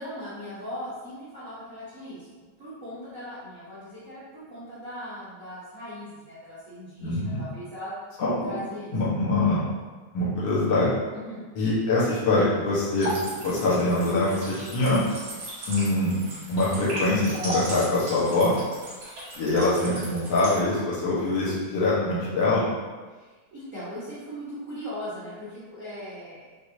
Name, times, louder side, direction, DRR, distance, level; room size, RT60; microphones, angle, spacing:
voice 1, 0.0-2.3 2.6-7.9 8.4-8.9 11.1-11.5 19.5-19.7 23.1-26.5, equal, 75° right, -12 dB, 0.7 m, -39 dB
voice 2, 7.0-7.4 8.2-8.5 8.9-9.7 10.1-10.9 11.6-13.1 13.4-15.0 15.7-16.2 16.5-18.5 19.4-22.6, left 2 dB, 65° left, -8 dB, 1.9 m, -24 dB
sound 1, 13.0-20.6, equal, 60° right, 2.5 m, -36 dB
6.2 x 2.7 x 2.7 m, 1.3 s
omnidirectional pair, 3.4 m